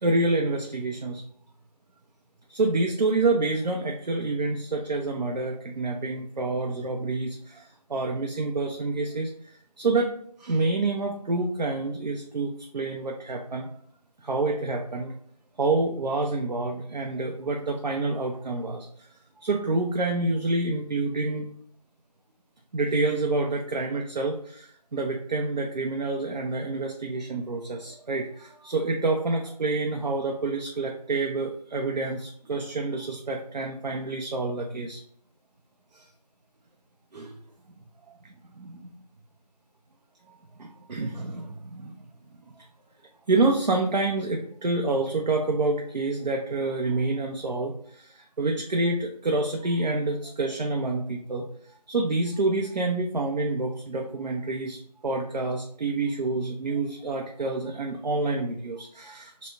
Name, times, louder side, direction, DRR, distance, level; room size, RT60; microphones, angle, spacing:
voice 1, 0.0-1.2 2.5-9.3 9.8-10.1 10.4-13.7 14.2-15.1 15.6-18.9 19.4-21.5 22.7-35.0 35.9-36.0 37.1-37.4 38.6-38.9 40.6-42.0 43.3-51.4 51.9-59.5, right 3 dB, 85° right, 1 dB, 0.5 m, -28 dB
2.1 x 2.0 x 3.5 m, 0.62 s
figure-of-eight pair, 175°, 21 cm